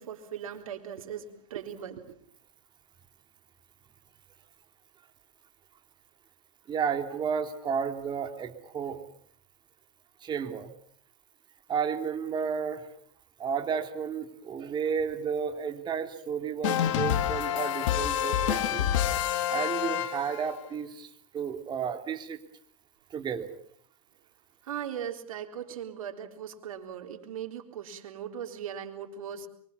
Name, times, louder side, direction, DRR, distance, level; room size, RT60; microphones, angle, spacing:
voice 1, 0.0-2.0 24.6-29.5, right 9 dB, 80° right, 5 dB, 4.0 m, -39 dB
voice 2, 6.7-9.0 10.2-10.7 11.7-12.8 13.4-18.9 19.5-21.1 21.3-22.4 23.1-23.5, right 7 dB, 25° right, 5 dB, 3.4 m, -32 dB
sound 1, 16.6-20.5, left 11 dB, 65° left, 2.7 m, -28 dB
24.5 x 24.0 x 7.2 m, 0.62 s
hypercardioid pair, 125°, 17 cm